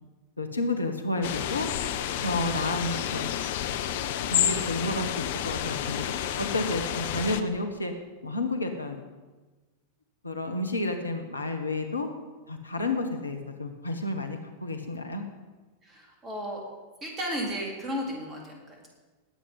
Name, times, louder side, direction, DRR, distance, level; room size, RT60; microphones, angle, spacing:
voice 1, 0.4-1.7 2.2-3.3 4.3-6.1 6.4-7.9 8.2-9.0 10.2-12.1 12.5-15.2, left 2 dB, 80° left, 6 dB, 1.4 m, -31 dB
sound 1, 1.2-7.4, left 10 dB, 55° left, 0.8 m, -30 dB
voice 2, 15.8-16.6 17.0-18.9, equal, 20° right, -1 dB, 4.0 m, -34 dB
19.0 x 8.5 x 5.5 m, 1.2 s
figure-of-eight pair, 90°, 0 cm